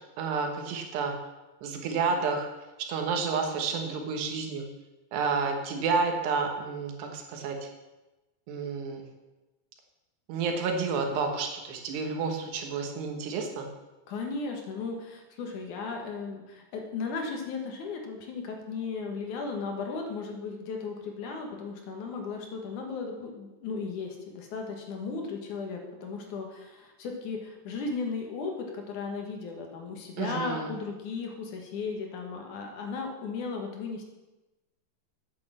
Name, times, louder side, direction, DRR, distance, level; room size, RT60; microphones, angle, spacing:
voice 1, 0.2-1.2 1.6-2.5 2.9-4.7 5.1-7.7 8.5-9.0 10.3-13.7 30.2-30.7, right 4 dB, 80° right, 3 dB, 3.5 m, -30 dB
voice 2, 14.1-34.0, left 4 dB, 60° left, 2 dB, 2.5 m, -36 dB
8.9 x 8.7 x 7.4 m, 1.1 s
omnidirectional pair, 4.8 m